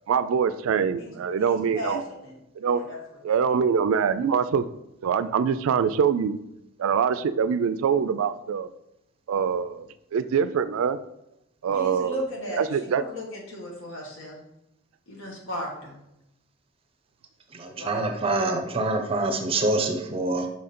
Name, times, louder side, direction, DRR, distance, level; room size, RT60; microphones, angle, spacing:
voice 1, 0.1-2.0 2.6-2.8 3.2-4.7 5.0-6.4 6.8-8.7 9.3-11.0 11.6-12.2 12.6-13.0, right 6 dB, 80° right, 13 dB, 0.3 m, -24 dB
voice 2, 1.0-2.4 2.6-3.0 3.3-3.6 11.7-14.4 15.1-16.0 17.6-18.3, equal, 75° left, -1 dB, 1.6 m, -36 dB
voice 3, 17.5-20.5, right 2 dB, 25° right, 5 dB, 0.5 m, -26 dB
5.9 x 3.7 x 4.2 m, 0.86 s
head